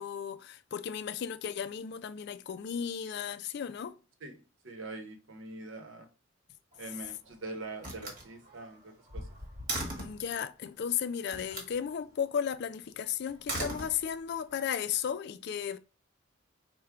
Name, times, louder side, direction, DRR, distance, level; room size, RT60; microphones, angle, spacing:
voice 1, 0.0-4.0 10.0-15.8, left 8 dB, 55° left, 0.3 m, -35 dB
voice 2, 4.6-6.1 6.8-9.3, right 2 dB, 70° right, 0.9 m, -43 dB
Slam, 6.7-7.3 7.8-10.3 11.3-11.8 13.3-14.4, right 1 dB, 40° right, 1.2 m, -39 dB
3.6 x 2.2 x 4.4 m
head